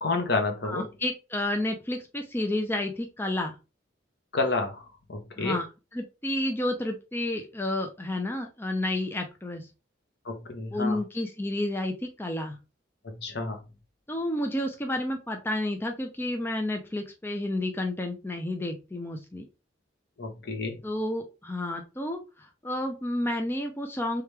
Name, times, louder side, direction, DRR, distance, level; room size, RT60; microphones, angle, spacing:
voice 1, 0.0-0.9 4.3-5.6 10.2-11.0 13.0-13.6 20.2-20.8, left 3 dB, 65° left, 4 dB, 1.0 m, -30 dB
voice 2, 0.6-3.6 5.4-5.6 5.9-9.7 10.7-12.6 14.1-19.5 20.8-24.2, left 1 dB, 10° left, 3 dB, 0.5 m, -30 dB
3.4 x 3.4 x 3.2 m, 0.29 s
head